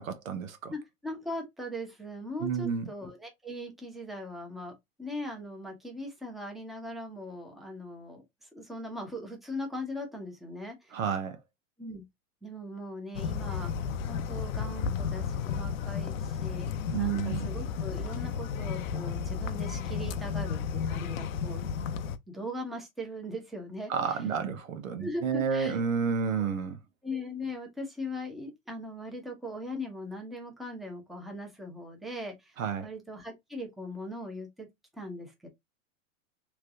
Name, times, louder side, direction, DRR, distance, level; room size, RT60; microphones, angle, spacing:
voice 1, 0.0-0.7 2.4-2.9 10.9-11.4 16.9-17.5 23.9-26.8 32.6-32.9, right 6 dB, 85° right, 1.0 m, -30 dB
voice 2, 0.7-11.0 11.8-12.0 12.4-13.7 14.1-16.7 17.0-21.7 22.3-24.2 25.0-25.8 27.0-34.7 34.9-35.5, left 1 dB, ahead, 0.8 m, -40 dB
sound 1, 13.1-22.2, left 6 dB, 80° left, 0.6 m, -33 dB
3.3 x 3.0 x 2.5 m
hypercardioid pair, 130°, 40 cm